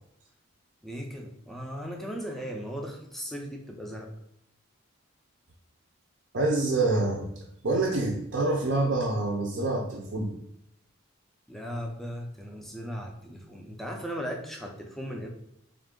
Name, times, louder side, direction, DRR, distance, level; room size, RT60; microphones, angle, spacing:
voice 1, 0.8-4.1 11.5-15.3, equal, ahead, 1 dB, 0.4 m, -37 dB
voice 2, 6.3-7.3 7.6-10.3, right 2 dB, 55° right, -1 dB, 0.5 m, -26 dB
3.6 x 2.4 x 3.6 m, 0.78 s
head